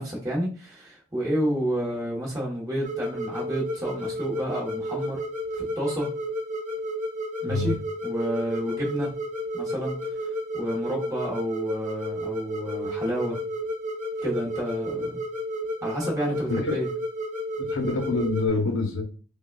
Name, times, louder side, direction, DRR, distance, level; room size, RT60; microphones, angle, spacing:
voice 1, 0.0-5.2 5.6-6.1 7.4-7.8 8.0-9.1 9.5-10.0 10.5-13.4 14.2-15.1 15.8-16.9, equal, 15° right, -4 dB, 1.1 m, -30 dB
sound 1, 2.8-18.5, equal, 35° right, 0.8 m, -32 dB
voice 2, 16.5-16.8 17.6-19.0, left 3 dB, 65° left, 3 dB, 0.8 m, -26 dB
5.1 x 2.3 x 2.3 m, 0.37 s
head